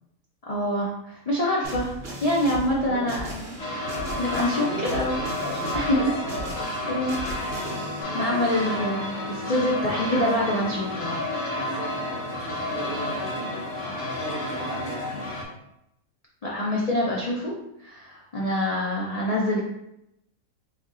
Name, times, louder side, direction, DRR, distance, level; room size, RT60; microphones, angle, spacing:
voice 1, 0.5-1.9 2.2-3.4 4.2-5.2 5.7-6.0 6.9-7.2 8.1-11.2 16.4-17.5 17.8-19.6, left 1 dB, 80° left, -4 dB, 0.3 m, -25 dB
sound 1, 1.6-8.0, right 1 dB, 50° right, 1.1 m, -37 dB
voice 2, 2.7-3.2 4.5-6.5 8.0-8.9 11.6-15.2 18.4-18.5, right 2 dB, 65° right, -2 dB, 0.5 m, -37 dB
sound 2, 3.6-15.4, left 1 dB, 65° left, 1.4 m, -31 dB
3.4 x 2.7 x 3.6 m, 0.82 s
omnidirectional pair, 1.5 m